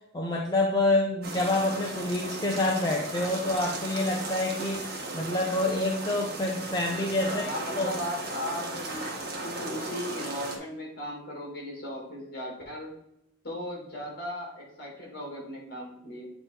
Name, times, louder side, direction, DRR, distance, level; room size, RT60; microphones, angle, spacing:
voice 1, 0.1-4.9 5.1-7.9, left 2 dB, 20° left, -1 dB, 0.6 m, -27 dB
sound 1, 1.2-10.6, right 2 dB, 50° right, 1.3 m, -36 dB
voice 2, 7.3-12.9 13.4-16.3, equal, 50° left, -1 dB, 2.4 m, -37 dB
8.0 x 3.3 x 4.4 m, 0.84 s
head